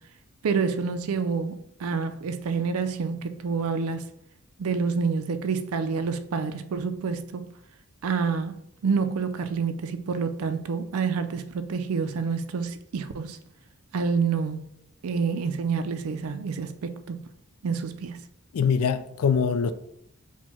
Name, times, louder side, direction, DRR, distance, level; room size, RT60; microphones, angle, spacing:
voice 1, 0.4-1.6 1.8-4.0 4.6-7.4 8.0-8.5 8.8-13.4 13.9-14.6 15.0-17.2 17.6-18.2, right 5 dB, 80° right, 0.4 m, -28 dB
voice 2, 18.5-19.7, left 6 dB, 90° left, 0.4 m, -23 dB
4.4 x 2.2 x 4.2 m
head